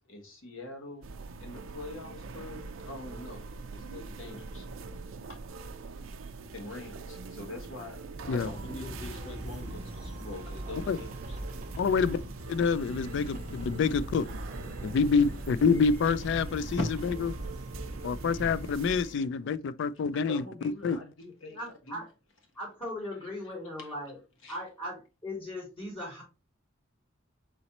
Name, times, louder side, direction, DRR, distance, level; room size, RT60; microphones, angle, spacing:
voice 1, 0.1-1.1 1.4-4.7 5.3-5.4 6.5-8.0 8.3-11.4 16.8-17.2 17.6-18.4 20.1-22.0 23.2-23.5 23.8-23.9 24.4-24.6, left 2 dB, 80° left, 1.3 m, -43 dB
sound 1, 1.0-19.0, right 3 dB, 85° right, 0.5 m, -43 dB
sound 2, 8.1-18.7, right 1 dB, 40° right, 0.7 m, -42 dB
sound 3, 8.3-19.2, right 2 dB, 10° left, 1.1 m, -55 dB
voice 2, 8.6-9.7 21.4-22.1 22.5-24.2 24.5-26.2, left 1 dB, 30° left, 2.8 m, -39 dB
voice 3, 11.8-12.2 12.5-14.3 14.8-16.8 18.0-20.4 20.8-21.0, left 5 dB, 65° left, 0.3 m, -27 dB
4.1 x 4.0 x 2.9 m
head